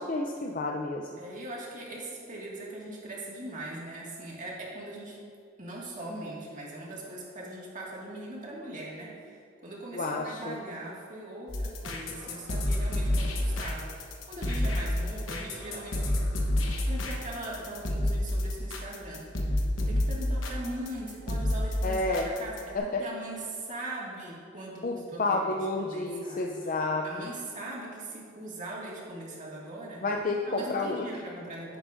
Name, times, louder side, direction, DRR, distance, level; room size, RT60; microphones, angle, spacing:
voice 1, 0.0-1.1 9.9-10.6 21.8-22.3 22.7-23.0 24.8-27.3 30.0-31.1, left 2 dB, 45° left, 1 dB, 0.5 m, -30 dB
voice 2, 1.2-5.2 5.6-9.2 9.6-16.3 16.9-19.6 19.9-26.6 27.0-30.0 30.5-31.8, right 1 dB, 40° right, -5 dB, 2.0 m, -40 dB
sound 1, 11.5-22.8, left 1 dB, 90° left, 1.1 m, -29 dB
10.5 x 9.9 x 2.6 m, 2.3 s
head